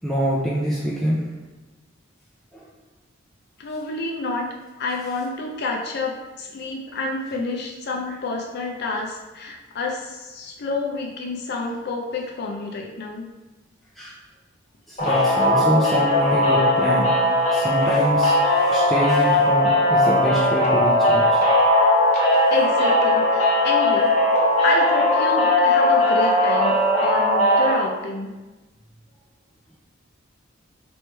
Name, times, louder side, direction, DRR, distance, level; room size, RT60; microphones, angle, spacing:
voice 1, 0.0-1.3 2.5-2.7 14.0-14.2 14.9-17.1 17.5-21.4, equal, ahead, -7 dB, 0.4 m, -25 dB
voice 2, 3.6-4.5 4.8-13.3 22.5-24.1 24.6-28.3, left 3 dB, 55° left, 0 dB, 0.5 m, -28 dB
sound 1, 15.0-27.7, left 1 dB, 35° left, 1.0 m, -18 dB
3.1 x 3.1 x 4.5 m, 1.1 s
head